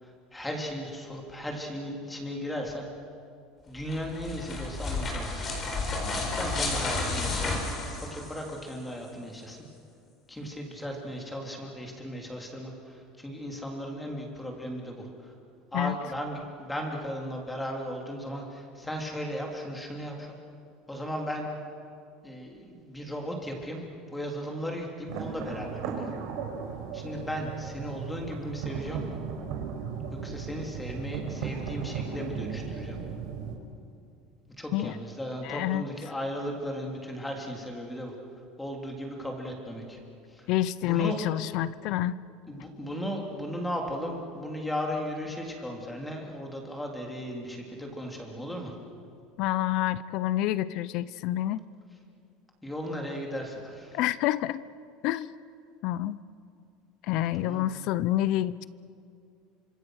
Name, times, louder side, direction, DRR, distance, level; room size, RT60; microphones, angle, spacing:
voice 1, 0.0-2.9 3.7-5.5 6.3-7.5 8.0-9.6 10.3-15.3 15.7-20.3 20.9-21.5 22.2-23.8 24.1-26.1 26.9-29.0 30.2-33.0 34.6-38.1 38.6-40.0 40.3-40.5 40.8-41.2 42.5-48.7 52.6-54.0 57.4-57.7, equal, 5° left, 1 dB, 3.4 m, -36 dB
sound 1, 3.8-8.7, left 3 dB, 25° left, 4.5 m, -32 dB
sound 2, 25.1-33.6, right 6 dB, 60° right, 4.5 m, -36 dB
voice 2, 35.4-35.8 40.5-42.2 49.4-51.6 53.9-54.6 55.0-55.3 55.8-56.2 57.0-58.7, left 14 dB, 50° left, 18 dB, 0.6 m, -28 dB
29.5 x 26.0 x 6.5 m, 2.4 s
cardioid pair, 165°, 0 cm